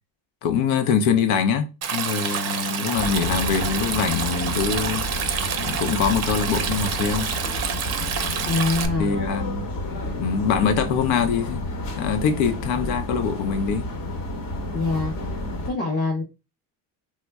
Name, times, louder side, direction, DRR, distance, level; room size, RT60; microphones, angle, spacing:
voice 1, 0.4-1.7 1.9-5.1 5.6-7.3 9.0-9.7 10.2-11.6 12.0-13.9, left 6 dB, 80° left, 0.7 m, -23 dB
Stream, 1.8-8.9, right 7 dB, 35° right, 0.5 m, -28 dB
sound 1, 3.0-15.7, left 1 dB, 50° left, 0.9 m, -31 dB
voice 2, 8.5-9.1 14.7-15.4 15.6-16.2, left 3 dB, 20° left, 0.6 m, -25 dB
3.1 x 2.1 x 3.4 m
cardioid pair, 100°, 46 cm